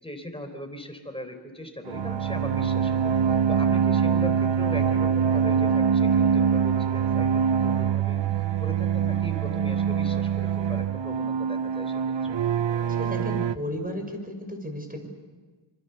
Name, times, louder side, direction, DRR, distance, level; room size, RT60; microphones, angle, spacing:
voice 1, 0.0-3.1 3.5-8.2 8.6-12.4, left 1 dB, 10° left, 6 dB, 4.0 m, -39 dB
sound 1, 1.9-13.5, right 7 dB, 60° right, 0.7 m, -24 dB
voice 2, 13.0-15.1, equal, 15° right, 4 dB, 6.1 m, -34 dB
26.5 x 25.0 x 7.0 m, 1.4 s
wide cardioid pair, 55°, 49 cm